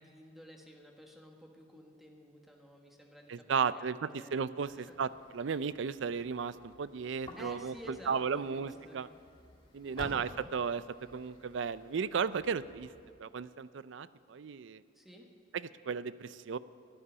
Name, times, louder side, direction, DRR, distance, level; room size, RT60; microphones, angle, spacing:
voice 1, 0.0-4.3 4.6-5.0 7.4-9.2 9.8-10.1 14.9-15.3, equal, ahead, 1 dB, 1.5 m, -53 dB
voice 2, 3.3-9.1 9.7-10.8 11.1-12.9 13.2-14.8 15.9-16.6, right 6 dB, 65° right, 16 dB, 0.4 m, -35 dB
sound 1, 4.6-13.1, left 1 dB, 25° left, 1.8 m, -53 dB
12.5 x 9.6 x 9.9 m, 2.3 s
head